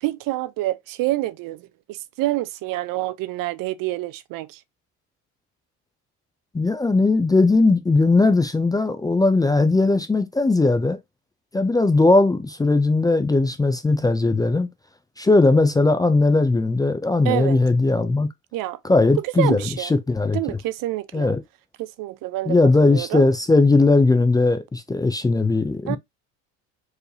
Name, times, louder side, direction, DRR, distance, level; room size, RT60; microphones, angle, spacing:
voice 1, 0.0-4.6 17.2-17.6 18.5-18.8 19.2-19.9 20.3-21.3 21.8-22.6 22.8-23.3 25.9-26.0, right 17 dB, 65° right, 0.6 m, -27 dB
voice 2, 6.5-11.0 11.5-14.7 15.2-18.3 18.8-20.4 21.1-21.4 22.5-26.0, left 3 dB, 10° left, 0.4 m, -18 dB
4.7 x 3.2 x 2.6 m
cardioid pair, 125°, 36 cm